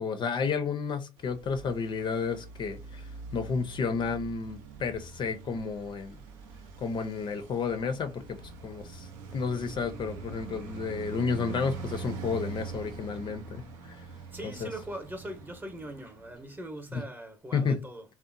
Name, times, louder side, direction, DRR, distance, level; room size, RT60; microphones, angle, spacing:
voice 1, 0.0-6.2 6.8-8.4 8.6-14.1 14.6-14.7 16.9-17.0 17.5-17.8, left 5 dB, 45° left, 0.4 m, -31 dB
Traffic noise roadway noise, 1.2-16.6, right 4 dB, 80° right, 0.5 m, -44 dB
voice 2, 14.3-18.0, right 1 dB, 15° right, 0.8 m, -41 dB
2.8 x 2.0 x 2.5 m
hypercardioid pair, 60°, 11 cm